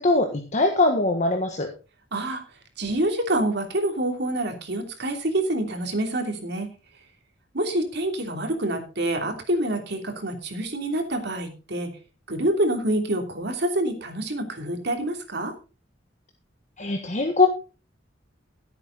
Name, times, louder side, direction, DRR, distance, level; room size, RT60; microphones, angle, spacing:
voice 1, 0.0-1.7 16.8-17.5, left 3 dB, 40° left, 4 dB, 1.5 m, -21 dB
voice 2, 2.1-2.4 2.8-6.7 7.5-11.9 12.3-15.5, right 1 dB, 60° right, 4 dB, 3.0 m, -27 dB
15.5 x 8.3 x 4.0 m, 0.33 s
head